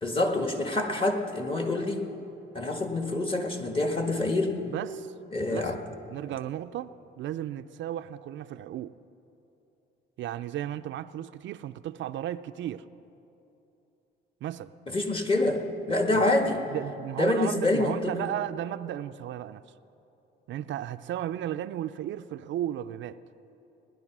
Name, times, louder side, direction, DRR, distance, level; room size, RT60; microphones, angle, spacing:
voice 1, 0.0-2.0 2.5-4.6 5.3-5.8 14.9-16.6 17.2-18.1, left 2 dB, 25° left, 5 dB, 1.6 m, -26 dB
voice 2, 4.7-5.1 5.5-5.7 6.1-8.9 10.2-12.9 14.4-14.7 16.1-16.3 16.7-19.6 20.5-23.2, right 12 dB, 70° right, 11 dB, 0.4 m, -34 dB
18.5 x 10.5 x 6.0 m, 2.9 s
cardioid pair, 90°, 20 cm